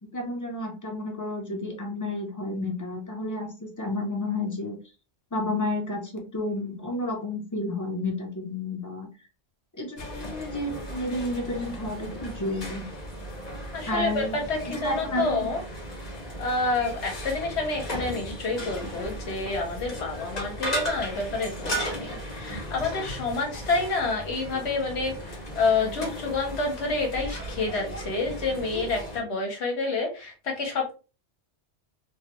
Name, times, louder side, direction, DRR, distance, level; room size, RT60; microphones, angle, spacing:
voice 1, 0.1-4.8 5.3-9.1 9.8-12.9 13.9-14.4 14.7-15.5, left 1 dB, 25° left, 1 dB, 0.5 m, -31 dB
sound 1, 10.0-29.2, equal, 40° left, 1.0 m, -36 dB
voice 2, 13.7-15.6 16.4-31.0, left 3 dB, 70° left, 2 dB, 1.0 m, -28 dB
3.1 x 2.2 x 2.9 m, 0.32 s
omnidirectional pair, 1.2 m